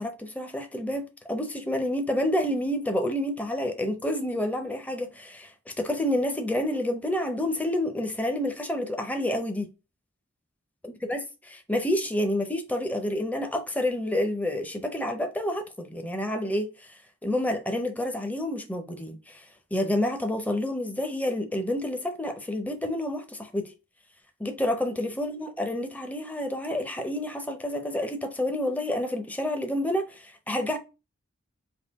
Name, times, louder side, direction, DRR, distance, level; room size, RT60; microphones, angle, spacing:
voice 1, 0.0-9.7 10.8-11.2 11.4-16.9 17.2-19.4 19.7-23.7 24.4-30.8, left 1 dB, 10° left, 0.5 m, -29 dB
3.6 x 2.6 x 4.0 m
head